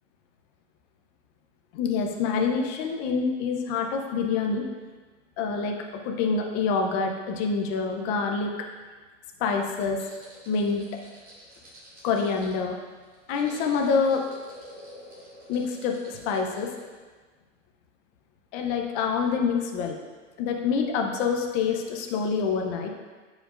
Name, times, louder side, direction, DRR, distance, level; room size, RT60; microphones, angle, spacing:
voice 1, 1.7-4.7 5.4-8.7 9.4-10.0 10.5-10.8 12.0-12.8 13.3-14.2 15.5-16.7 18.5-20.0 20.4-22.9, left 5 dB, 25° left, 2 dB, 0.6 m, -26 dB
sound 1, 9.9-17.0, equal, 20° right, 2.1 m, -48 dB
9.8 x 5.2 x 2.5 m, 1.4 s
hypercardioid pair, 145°, 38 cm